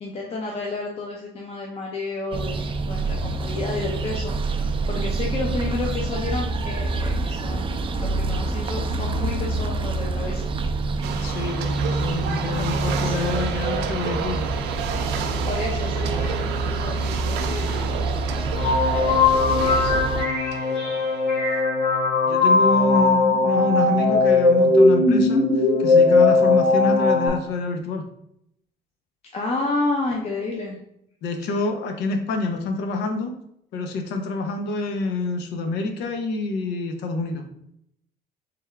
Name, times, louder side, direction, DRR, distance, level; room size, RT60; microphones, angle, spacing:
voice 1, 0.0-10.5 11.9-12.0 12.3-13.4 15.5-20.0 29.3-30.8, left 3 dB, 35° left, -2 dB, 0.7 m, -31 dB
sound 1, 2.3-20.3, right 3 dB, 30° right, 0.4 m, -26 dB
sound 2, 11.0-21.4, right 7 dB, 85° right, 0.5 m, -31 dB
voice 2, 11.2-14.5 22.3-25.4 25.8-28.1 31.2-33.3 33.7-37.5, left 3 dB, 85° left, 5 dB, 0.7 m, -27 dB
sound 3, 18.6-27.3, left 3 dB, 55° left, 1.5 m, -19 dB
3.5 x 3.4 x 3.3 m, 0.73 s
cardioid pair, 110°, 17 cm